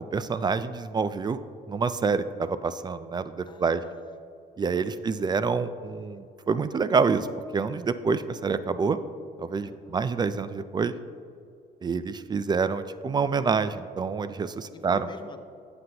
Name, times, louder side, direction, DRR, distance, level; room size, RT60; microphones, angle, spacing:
voice 1, 0.1-1.4 1.7-3.8 4.6-7.3 7.5-9.0 9.4-10.9 11.8-15.1, right 5 dB, 25° right, 13 dB, 0.3 m, -27 dB
voice 2, 3.4-4.2 4.7-5.1 5.7-6.2 9.6-10.1 14.7-15.4, left 4 dB, 25° left, 7 dB, 0.7 m, -47 dB
13.0 x 7.8 x 2.9 m, 2.4 s
cardioid pair, 110°, 17 cm